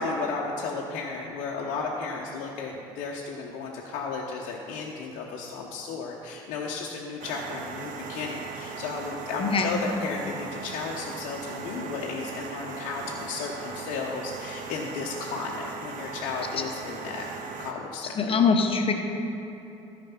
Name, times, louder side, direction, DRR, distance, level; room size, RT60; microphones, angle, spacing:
voice 1, 0.0-17.3 17.6-18.3, left 4 dB, 60° left, -2 dB, 0.9 m, -34 dB
sound 1, 7.2-17.7, right 5 dB, 60° right, 0.8 m, -38 dB
voice 2, 9.4-9.7 18.2-18.9, left 5 dB, 35° left, 5 dB, 1.1 m, -22 dB
14.0 x 5.2 x 5.8 m, 3.0 s
figure-of-eight pair, 55°, 16 cm